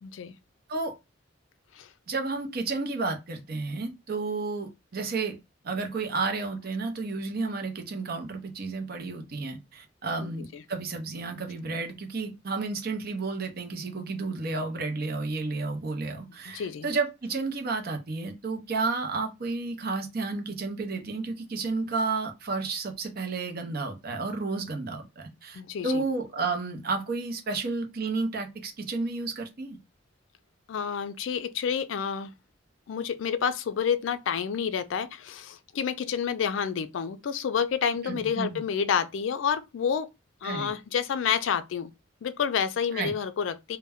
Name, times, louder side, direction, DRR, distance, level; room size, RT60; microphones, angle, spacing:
voice 1, 0.0-0.3 1.8-1.9 10.5-10.6 16.5-16.9 25.5-26.0 30.7-32.3 32.9-40.1 40.4-41.9 42.2-43.8, left 7 dB, 70° left, 0.3 m, -29 dB
voice 2, 2.1-5.4 5.6-29.8 38.0-38.6 40.4-40.7 42.9-43.1, right 3 dB, 50° right, 0.6 m, -31 dB
2.2 x 2.1 x 3.4 m
head